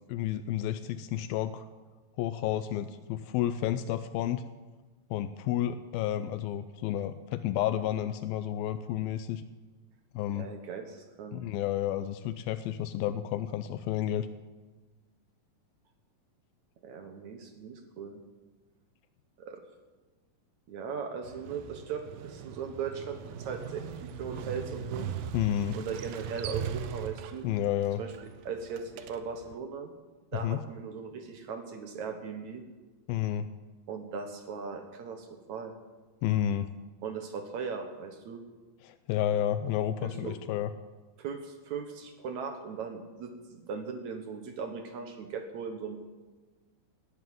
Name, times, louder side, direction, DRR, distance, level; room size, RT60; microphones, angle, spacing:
voice 1, 0.1-1.7 2.2-4.4 5.1-9.4 10.1-10.5 11.3-14.3 25.3-25.8 27.4-28.0 30.4-30.6 33.1-33.5 36.2-36.7 38.8-40.7, left 11 dB, 85° left, 11 dB, 2.4 m, -31 dB
voice 2, 10.3-11.4 16.8-18.2 19.4-19.6 20.7-23.8 24.2-25.1 25.7-27.5 28.0-28.1 28.5-29.9 30.3-32.6 33.9-35.7 37.0-38.4 40.0-40.4 41.2-46.1, right 6 dB, 65° right, 6 dB, 2.2 m, -38 dB
Motorcycle, 21.2-29.6, right 8 dB, 90° right, 2.7 m, -40 dB
18.5 x 10.0 x 7.7 m, 1.3 s
omnidirectional pair, 4.2 m